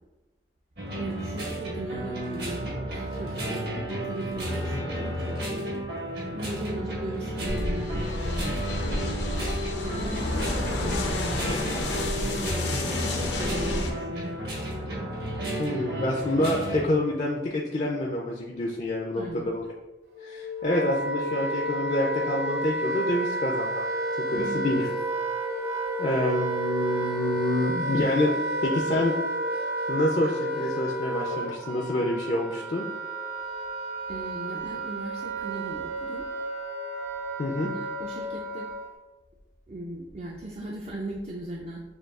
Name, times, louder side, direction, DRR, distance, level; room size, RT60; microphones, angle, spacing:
sound 1, 0.8-16.8, right 1 dB, 65° right, 1.3 m, -33 dB
voice 1, 1.0-5.8 6.3-9.0 9.8-11.8 12.1-14.4 19.2-19.5 24.3-24.6 34.1-36.2 37.5-38.7 39.7-41.8, right 1 dB, 35° right, -1 dB, 0.4 m, -37 dB
sound 2, 7.4-13.9, left 2 dB, 85° left, 0.6 m, -30 dB
voice 2, 15.6-19.7 20.2-23.8 24.3-24.8 26.0-28.3 28.6-29.1 29.9-32.8 37.4-37.7, left 1 dB, 40° left, 0 dB, 0.4 m, -27 dB
Wind instrument woodwind instrument, 20.1-38.9, right 1 dB, 80° right, 0.6 m, -31 dB
6.5 x 2.3 x 2.3 m, 1.1 s
head